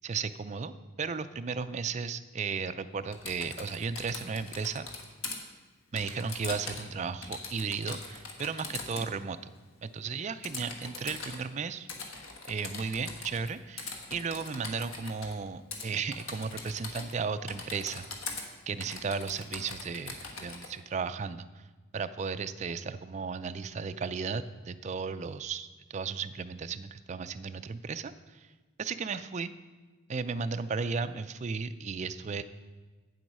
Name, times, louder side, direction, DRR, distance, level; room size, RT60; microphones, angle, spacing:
voice 1, 0.0-0.7 1.0-4.9 5.9-9.5 9.8-11.9 12.5-18.1 18.7-21.6 21.9-28.5 28.8-29.5 30.1-32.4, right 5 dB, 35° right, 11 dB, 0.4 m, -35 dB
Typing, 3.1-5.4 6.0-6.9 7.2-9.1 10.4-11.4 11.9-13.5 13.8-15.3 15.7-15.9 16.1-17.2 17.5-18.5 18.8-20.7, left 4 dB, 85° left, 1.4 m, -41 dB
8.6 x 7.7 x 5.4 m, 1.3 s
head